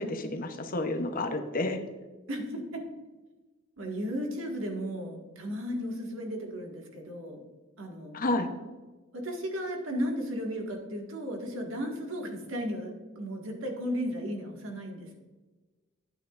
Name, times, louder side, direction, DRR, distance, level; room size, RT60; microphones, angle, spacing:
voice 1, 0.0-1.8 8.1-8.5, left 2 dB, 45° left, 6 dB, 0.9 m, -30 dB
voice 2, 2.3-2.8 3.8-7.4 7.8-8.2 9.1-15.2, equal, 80° right, 1 dB, 1.8 m, -35 dB
10.5 x 9.2 x 2.5 m, 1.2 s
head